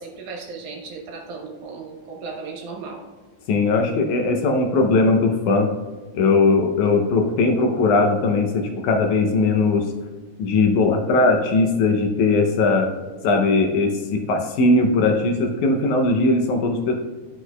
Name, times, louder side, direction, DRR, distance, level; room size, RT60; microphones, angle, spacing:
voice 1, 0.0-3.0, right 4 dB, 70° right, 0 dB, 2.4 m, -36 dB
voice 2, 3.5-5.7 6.1-9.8 10.4-12.9 13.2-16.9, left 3 dB, 75° left, 3 dB, 2.0 m, -19 dB
11.5 x 6.2 x 2.2 m, 1.4 s
omnidirectional pair, 3.7 m